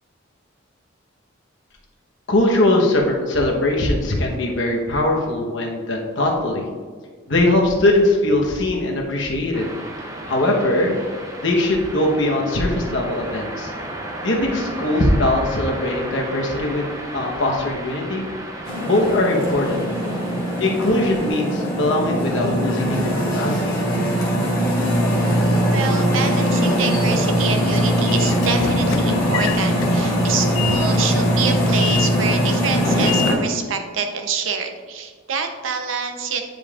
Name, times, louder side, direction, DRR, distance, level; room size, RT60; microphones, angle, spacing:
voice 1, 2.3-6.6 7.3-9.7 10.3-13.7 14.2-18.3 18.8-19.8 20.6-23.8, left 1 dB, 65° left, 0 dB, 1.0 m, -21 dB
sound 1, 9.5-21.3, right 1 dB, 15° right, 0.6 m, -34 dB
sound 2, 18.6-33.3, equal, 20° left, 1.9 m, -21 dB
voice 2, 25.7-36.4, right 5 dB, 75° right, 5 dB, 0.7 m, -26 dB
Train / Sliding door, 27.2-33.7, left 8 dB, 80° left, 0.3 m, -30 dB
9.3 x 5.2 x 2.4 m, 1.5 s
head